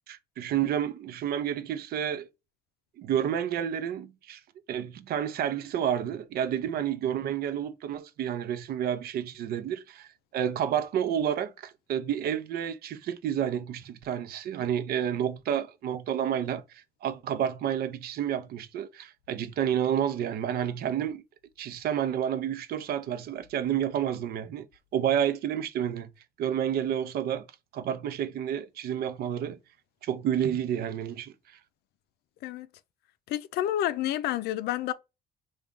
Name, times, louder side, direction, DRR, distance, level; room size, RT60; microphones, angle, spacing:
voice 1, 0.1-2.3 3.0-4.4 4.7-21.2 21.6-24.7 24.9-26.1 26.4-27.5 27.7-29.6 30.0-31.3, right 9 dB, 65° right, 0.6 m, -30 dB
voice 2, 33.3-34.9, left 12 dB, 70° left, 0.4 m, -29 dB
3.6 x 2.3 x 3.6 m
cardioid pair, 110°, 17 cm